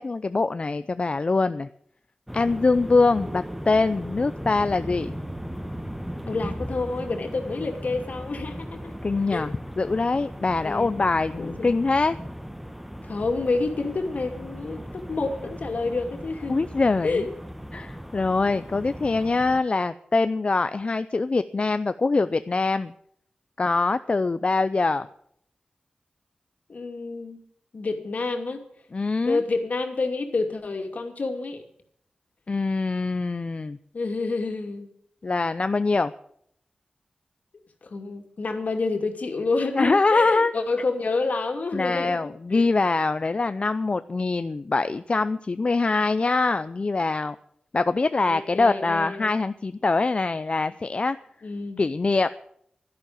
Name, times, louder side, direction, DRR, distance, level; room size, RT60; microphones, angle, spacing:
voice 1, 0.0-1.7 2.3-5.1 9.0-12.2 16.5-17.3 17.7-22.9 23.6-25.1 28.9-29.4 32.5-33.8 35.2-36.1 39.8-40.5 41.7-47.4 47.7-51.2 51.8-52.3, left 3 dB, 40° left, 12 dB, 0.5 m, -23 dB
sound 1, 2.3-19.6, equal, 5° right, 1.1 m, -37 dB
voice 2, 6.3-8.9 9.3-9.5 10.6-11.0 11.4-11.7 13.0-16.7 17.0-17.3 26.7-27.4 27.7-28.6 29.2-31.6 33.9-34.9 37.8-42.7 48.3-49.3 51.4-51.8, left 3 dB, 60° left, 4 dB, 2.5 m, -28 dB
12.0 x 11.5 x 8.5 m, 0.68 s
wide cardioid pair, 100°, 3 cm